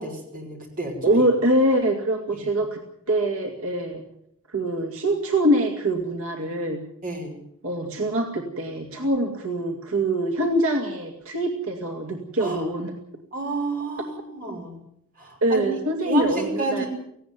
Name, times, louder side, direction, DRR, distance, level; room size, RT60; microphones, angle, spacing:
voice 1, 0.0-1.2 7.0-7.3 12.4-12.6 13.3-14.8 15.2-15.6 16.0-16.9, right 2 dB, 40° right, 2 dB, 5.8 m, -30 dB
voice 2, 1.0-2.8 3.1-4.0 4.5-6.8 7.6-12.9 15.4-16.8, right 1 dB, 75° right, 3 dB, 2.5 m, -24 dB
18.0 x 16.5 x 9.4 m, 0.73 s
head